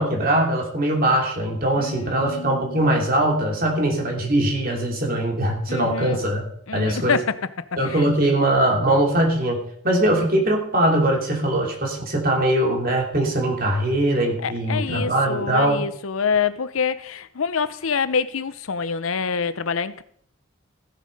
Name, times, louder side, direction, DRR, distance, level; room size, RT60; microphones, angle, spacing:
voice 1, 0.0-6.4 6.7-7.2 7.8-15.8, right 1 dB, 45° right, 2.9 m, -21 dB
voice 2, 1.8-3.0 5.7-6.2 6.7-8.0 14.4-20.0, left 6 dB, 85° left, 0.7 m, -26 dB
15.0 x 7.5 x 5.3 m
head